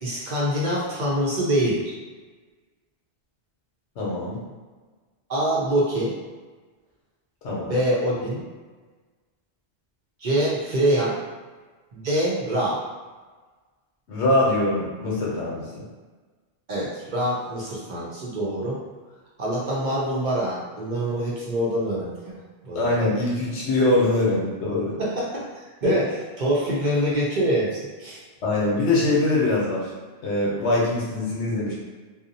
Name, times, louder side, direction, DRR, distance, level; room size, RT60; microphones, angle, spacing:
voice 1, 0.0-1.9 5.3-6.1 7.6-8.4 10.2-11.2 11.9-12.8 16.7-18.8 19.4-22.3 22.6-22.9 25.0-26.1 26.4-28.2, right 1 dB, 50° right, -6 dB, 0.6 m, -25 dB
voice 2, 4.0-4.4 7.4-7.8 14.1-15.8 22.7-25.0 28.4-29.9 30.2-31.7, left 2 dB, 85° left, -5 dB, 1.0 m, -23 dB
2.6 x 2.0 x 2.6 m, 1.4 s
omnidirectional pair, 1.1 m